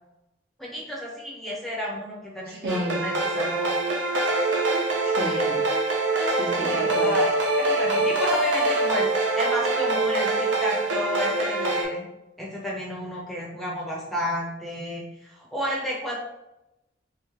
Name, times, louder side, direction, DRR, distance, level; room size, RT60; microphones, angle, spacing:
voice 1, 0.6-3.8 6.6-7.3 7.6-12.1 12.4-16.1, equal, ahead, -4 dB, 0.6 m, -31 dB
voice 2, 2.5-3.1 5.0-5.6 6.3-7.1, right 1 dB, 55° right, -2 dB, 1.1 m, -31 dB
sound 1, 2.7-11.8, right 2 dB, 90° right, 0.7 m, -24 dB
3.1 x 2.9 x 3.7 m, 0.91 s
head